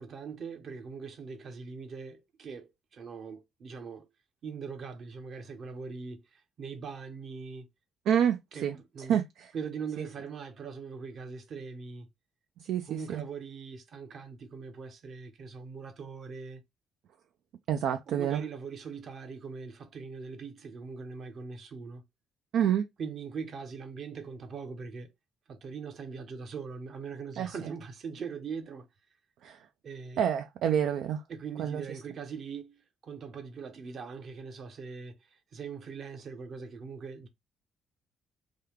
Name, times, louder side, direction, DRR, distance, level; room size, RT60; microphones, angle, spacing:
voice 1, 0.0-4.1 4.4-7.7 8.5-9.2 9.5-12.1 12.9-16.6 18.1-22.0 23.0-25.1 25.5-28.9 29.8-30.2 31.3-37.3, right 5 dB, 60° right, 0.8 m, -41 dB
voice 2, 8.1-9.5 12.6-13.2 17.7-18.4 22.5-22.9 27.4-27.6 29.4-29.6 30.2-31.2 31.6-31.8, right 9 dB, 75° right, 0.3 m, -28 dB
3.6 x 2.3 x 3.3 m
supercardioid pair, 65°, 0 cm